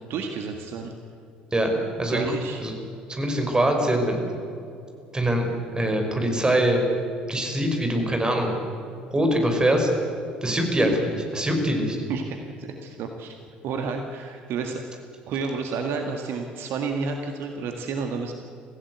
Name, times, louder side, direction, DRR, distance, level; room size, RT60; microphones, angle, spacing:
voice 1, 0.1-0.9 2.1-2.6 12.1-13.4 13.6-14.8 15.3-18.3, right 5 dB, 50° right, 4 dB, 1.8 m, -30 dB
voice 2, 1.5-2.2 2.6-2.7 3.1-4.2 5.1-6.9 7.3-8.5 9.1-9.9 10.4-12.0, right 1 dB, 15° right, 3 dB, 5.5 m, -23 dB
25.0 x 16.0 x 8.2 m, 2.6 s
figure-of-eight pair, 60°, 5 cm